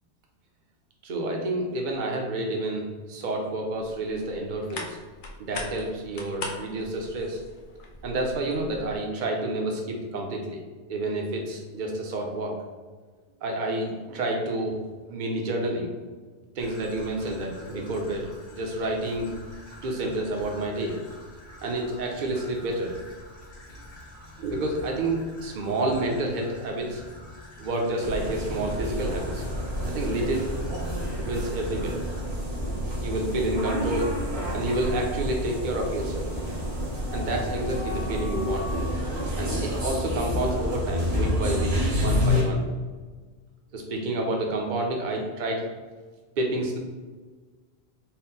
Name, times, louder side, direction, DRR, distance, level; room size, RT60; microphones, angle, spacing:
voice 1, 1.0-5.0 5.4-7.4 8.0-10.6 10.9-12.5 13.4-14.8 15.1-15.9 16.6-19.3 19.8-21.0 21.6-22.9 24.4-27.0 27.6-29.4 29.9-30.5 31.2-32.0 33.0-34.2 34.5-36.3 37.1-38.7 39.4-42.6 43.7-45.7 46.4-46.8, right 1 dB, 50° right, 1 dB, 0.8 m, -29 dB
sound 1, 3.8-9.0, left 2 dB, 55° left, 0.7 m, -41 dB
Traffic noise roadway noise / Trickle dribble, 16.6-32.2, left 1 dB, 70° left, 1.5 m, -46 dB
sound 2, 28.0-42.4, left 1 dB, 70° right, 1.4 m, -29 dB
4.3 x 2.0 x 3.9 m, 1.4 s
omnidirectional pair, 1.1 m